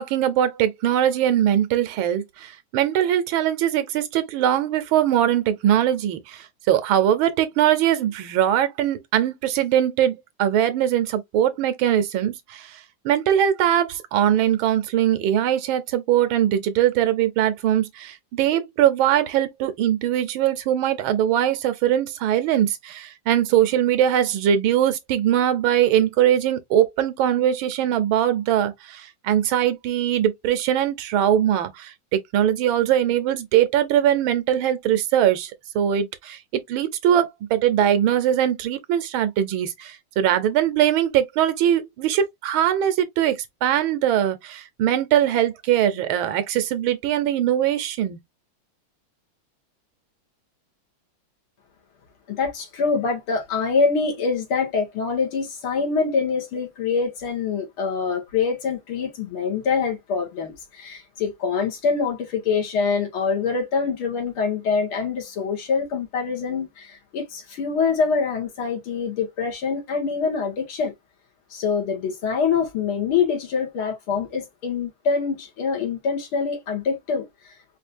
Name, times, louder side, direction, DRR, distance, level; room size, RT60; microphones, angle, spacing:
voice 1, 0.0-12.7 13.0-48.2, right 11 dB, 75° right, 1.6 m, -21 dB
voice 2, 52.3-70.9 71.5-77.3, left 5 dB, 85° left, 2.4 m, -25 dB
5.1 x 2.7 x 2.6 m
omnidirectional pair, 2.3 m